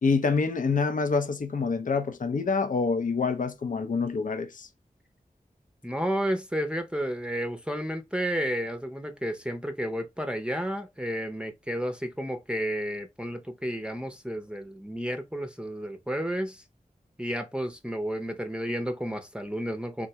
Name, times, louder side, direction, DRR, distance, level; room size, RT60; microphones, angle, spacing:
voice 1, 0.0-4.7, left 4 dB, 60° left, 0.5 m, -26 dB
voice 2, 5.8-16.6 17.2-20.1, equal, 5° right, 0.5 m, -31 dB
3.6 x 2.2 x 2.8 m
wide cardioid pair, 55°, 15 cm